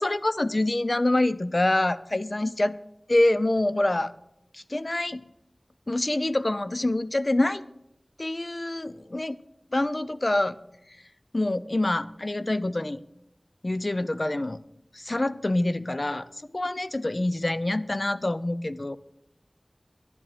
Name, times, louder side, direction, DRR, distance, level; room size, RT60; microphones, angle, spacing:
voice 1, 0.0-2.8 3.1-4.1 4.5-5.3 5.9-7.7 8.2-9.4 9.7-10.6 11.3-13.0 13.6-14.6 14.9-16.2 16.5-19.0, left 1 dB, 50° left, 14 dB, 0.5 m, -26 dB
11.0 x 8.6 x 5.1 m, 0.80 s
wide cardioid pair, 45°, 0 cm